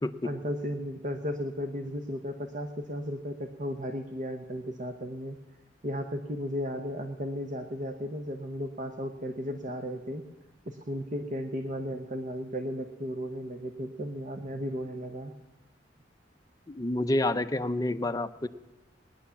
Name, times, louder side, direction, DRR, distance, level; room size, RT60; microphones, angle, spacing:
voice 1, 0.2-5.4 5.8-10.2 10.6-15.3, equal, 45° right, 6 dB, 1.0 m, -35 dB
voice 2, 16.7-18.5, left 1 dB, 20° left, 9 dB, 0.6 m, -28 dB
19.0 x 10.5 x 7.1 m, 1.0 s
head